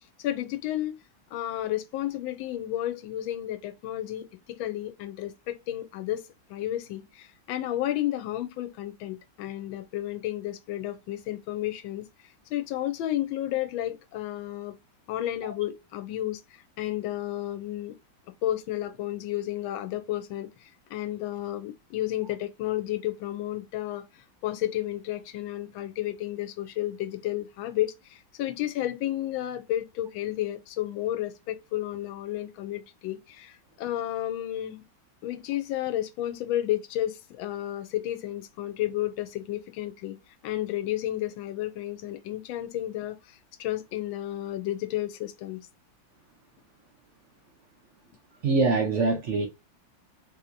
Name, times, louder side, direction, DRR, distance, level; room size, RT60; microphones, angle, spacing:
voice 1, 0.2-1.0 1.3-6.2 6.5-12.0 12.5-14.8 15.1-18.0 18.4-34.8 35.2-40.2 40.4-45.7, left 13 dB, 85° left, 1.3 m, -32 dB
voice 2, 48.4-49.5, right 3 dB, 80° right, 0.6 m, -23 dB
3.7 x 2.8 x 2.5 m
omnidirectional pair, 2.1 m